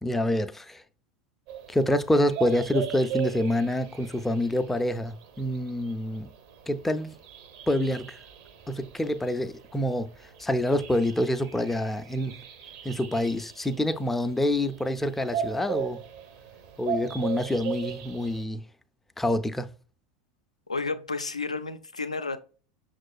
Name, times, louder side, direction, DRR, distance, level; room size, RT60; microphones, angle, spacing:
voice 1, 0.0-0.8 1.7-6.3 6.7-7.1 7.7-8.2 8.7-10.1 10.4-12.4 12.8-16.0 16.8-18.6 19.2-19.7, left 1 dB, 5° left, 0.3 m, -27 dB
sound 1, 1.5-18.4, right 9 dB, 55° right, 0.6 m, -38 dB
voice 2, 20.7-22.4, left 4 dB, 85° left, 0.3 m, -31 dB
5.9 x 2.4 x 2.3 m
figure-of-eight pair, 80°, 3 cm